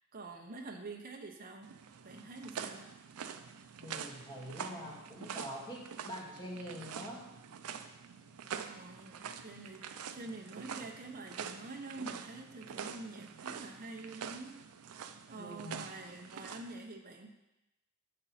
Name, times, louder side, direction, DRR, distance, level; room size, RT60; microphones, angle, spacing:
voice 1, 0.1-1.7 2.0-2.9 8.6-14.5 14.9-17.3, right 3 dB, 40° right, 2 dB, 0.9 m, -47 dB
sound 1, 1.6-16.7, right 7 dB, 85° right, 0.5 m, -46 dB
voice 2, 3.8-7.2 15.3-15.9, equal, 20° left, -4 dB, 1.8 m, -45 dB
8.3 x 5.4 x 4.2 m, 0.95 s
head